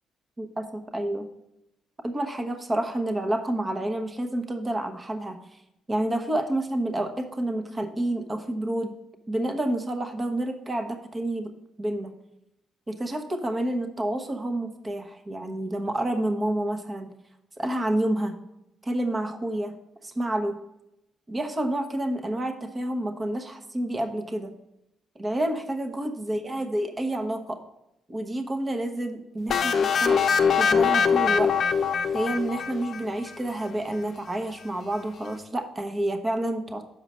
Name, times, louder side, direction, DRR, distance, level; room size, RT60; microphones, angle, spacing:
voice 1, 0.4-1.3 2.0-5.4 5.9-9.0 9.3-12.1 12.9-17.1 17.6-18.4 18.8-19.7 20.0-20.6 21.3-24.5 25.1-27.6 28.1-30.2 30.6-31.5 32.1-36.8, right 1 dB, 25° right, 6 dB, 1.0 m, -29 dB
sound 1, 29.5-33.3, left 6 dB, 55° left, 0.6 m, -23 dB
6.7 x 4.8 x 6.3 m, 0.86 s
cardioid pair, 90°, 0 cm